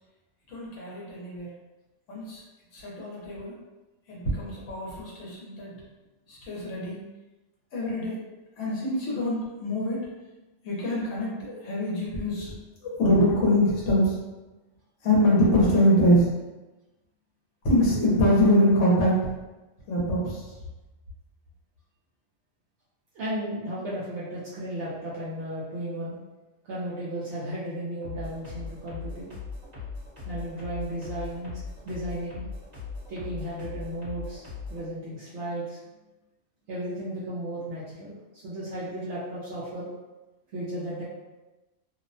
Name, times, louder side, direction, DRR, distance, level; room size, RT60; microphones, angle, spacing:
voice 1, 0.5-1.5 2.1-2.4 2.7-3.5 4.1-5.7 6.3-7.0 7.7-8.2 8.6-10.0 10.6-12.5 12.8-14.2 15.0-16.3 17.6-19.2 19.9-20.5, equal, 75° left, -5 dB, 1.1 m, -24 dB
voice 2, 23.1-26.2 26.6-29.3 30.3-31.5 31.9-32.4 33.1-34.4 34.7-35.8 36.7-39.9 40.5-41.0, right 1 dB, 70° right, -7 dB, 0.9 m, -34 dB
sound 1, 28.0-34.8, left 4 dB, 35° right, 1.0 m, -39 dB
2.6 x 2.1 x 2.6 m, 1.1 s
omnidirectional pair, 1.3 m